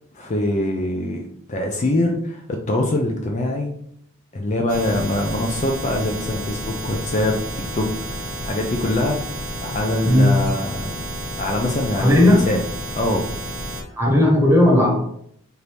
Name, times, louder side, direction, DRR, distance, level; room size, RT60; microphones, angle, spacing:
voice 1, 0.1-3.8 4.3-7.4 7.7-11.0 11.4-12.6 12.9-13.3, left 1 dB, 35° left, 2 dB, 0.4 m, -24 dB
sound 1, 4.7-13.8, right 1 dB, 40° right, 1.1 m, -31 dB
voice 2, 10.0-10.4 12.0-12.5 13.9-14.9, left 1 dB, 10° right, -3 dB, 1.0 m, -15 dB
4.5 x 2.7 x 3.3 m, 0.67 s
head